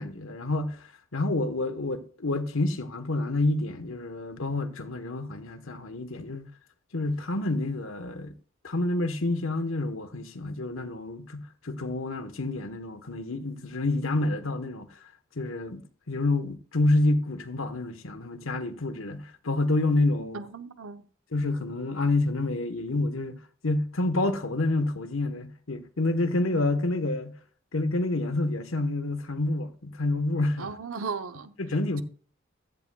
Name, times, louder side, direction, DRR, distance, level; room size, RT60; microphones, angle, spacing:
voice 1, 0.0-6.5 6.9-8.3 8.6-14.9 15.4-20.4 21.3-27.3 27.7-30.7 31.6-32.0, left 2 dB, 75° left, 1.2 m, -28 dB
voice 2, 20.3-21.0 30.6-31.5, right 5 dB, 85° right, 0.9 m, -36 dB
15.0 x 11.0 x 2.3 m
head